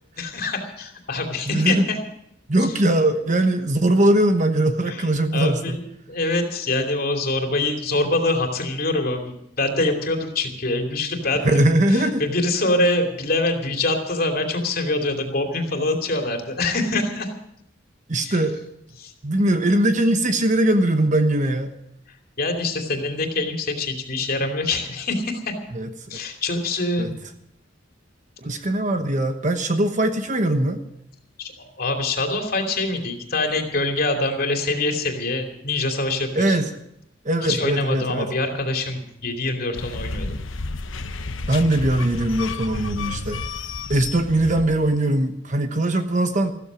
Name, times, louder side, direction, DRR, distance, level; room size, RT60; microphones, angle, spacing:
voice 1, 0.2-2.0 2.6-2.7 4.9-5.1 5.3-5.8 6.1-11.5 11.9-17.3 18.2-18.4 19.0-19.1 22.4-25.6 26.1-27.2 31.4-36.6 37.4-40.4, left 2 dB, 50° left, 4 dB, 2.8 m, -24 dB
voice 2, 1.5-1.9 2.5-5.8 11.4-12.2 18.1-18.6 19.2-21.7 25.7-25.9 27.0-27.1 28.4-30.8 36.3-36.7 37.2-38.3 41.5-43.4 43.9-46.5, right 1 dB, 40° right, 8 dB, 1.1 m, -20 dB
sound 1, 39.7-45.0, left 3 dB, 80° left, 1.0 m, -31 dB
15.0 x 13.5 x 6.3 m, 0.78 s
head